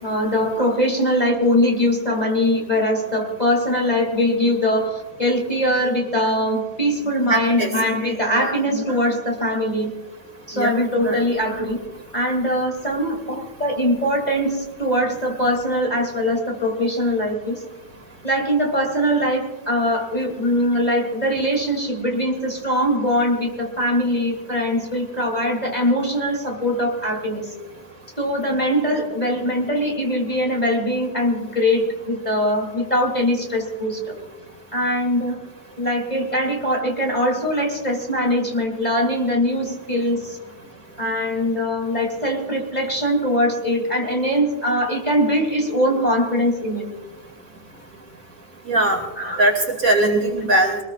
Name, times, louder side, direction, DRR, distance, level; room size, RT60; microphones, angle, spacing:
voice 1, 0.0-9.9 10.5-11.8 12.1-17.6 18.2-27.5 28.2-34.1 34.7-35.4 35.8-40.4 41.0-46.8 49.2-49.4 49.9-50.0, equal, 20° left, 0 dB, 2.9 m, -22 dB
voice 2, 7.3-7.7 8.3-8.6 10.6-10.7 11.1-11.2 48.7-49.0 49.4-50.8, right 2 dB, 45° right, 2 dB, 2.9 m, -20 dB
23.5 x 20.0 x 2.4 m, 1.1 s
omnidirectional pair, 2.0 m